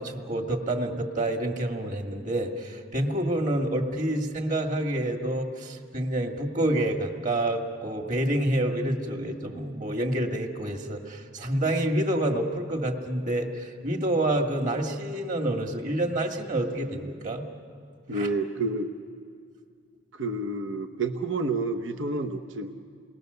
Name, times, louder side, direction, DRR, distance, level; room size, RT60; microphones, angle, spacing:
voice 1, 0.0-17.4 18.1-18.3, right 1 dB, 40° right, 3 dB, 2.0 m, -28 dB
voice 2, 18.1-18.9 20.2-22.7, right 2 dB, 75° right, 5 dB, 1.0 m, -29 dB
29.5 x 20.0 x 6.8 m, 2.3 s
head